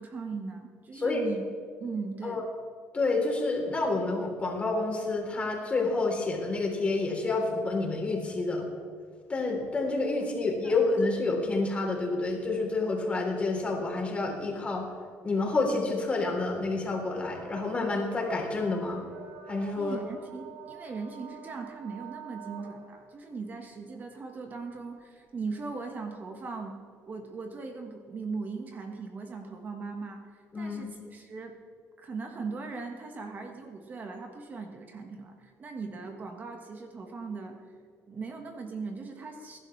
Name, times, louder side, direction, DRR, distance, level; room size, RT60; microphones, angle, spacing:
voice 1, 0.0-1.4 1.8-2.4 10.6-10.8 19.8-26.8 27.0-31.6 32.0-37.6 38.0-39.6, right 4 dB, 35° right, 3 dB, 1.5 m, -39 dB
voice 2, 1.0-1.3 2.2-2.4 2.9-8.7 9.3-14.9 15.2-19.0 19.5-20.0 30.5-30.9, left 3 dB, 25° left, 0 dB, 3.6 m, -29 dB
sound 1, 17.0-23.1 24.6-24.7 25.6-25.7, right 6 dB, 75° right, 3.1 m, -47 dB
21.5 x 11.5 x 3.3 m, 2.1 s
cardioid pair, 115°, 5 cm